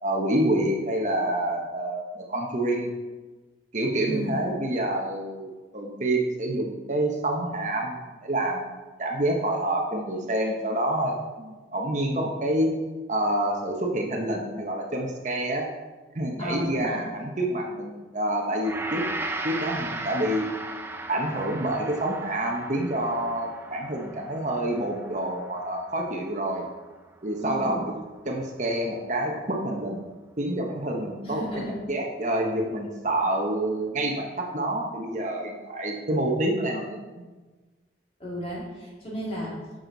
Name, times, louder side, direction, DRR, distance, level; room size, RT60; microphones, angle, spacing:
voice 1, 0.0-2.9 3.7-12.7 13.1-15.7 16.1-19.0 19.4-20.5 21.1-26.6 27.2-28.0 28.2-30.0 30.4-31.5 31.9-37.2, right 1 dB, 40° right, 1 dB, 1.0 m, -27 dB
voice 2, 4.0-4.3 16.4-17.0 27.4-27.8 31.2-31.7 38.2-39.6, equal, 30° left, -4 dB, 2.5 m, -33 dB
Gong, 18.6-27.1 27.4-27.6, right 2 dB, 10° right, 0.5 m, -37 dB
9.6 x 6.5 x 4.0 m, 1.3 s
head